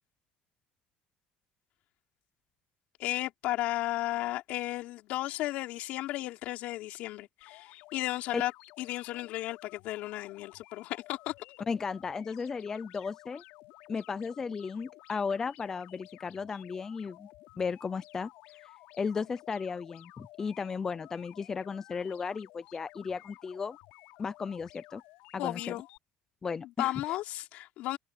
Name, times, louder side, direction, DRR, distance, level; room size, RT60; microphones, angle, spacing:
voice 1, 3.0-8.5 8.8-11.3 25.4-25.8 26.8-28.0, left 16 dB, 65° left, 4.0 m, -34 dB
sound 1, 7.4-26.0, left 20 dB, 85° left, 5.3 m, -54 dB
voice 2, 11.7-13.4 13.9-17.3 17.6-18.3 18.6-23.8 24.2-25.0 25.3-25.8 26.4-27.2, left 5 dB, 20° left, 0.4 m, -35 dB
cardioid pair, 170°, 3 cm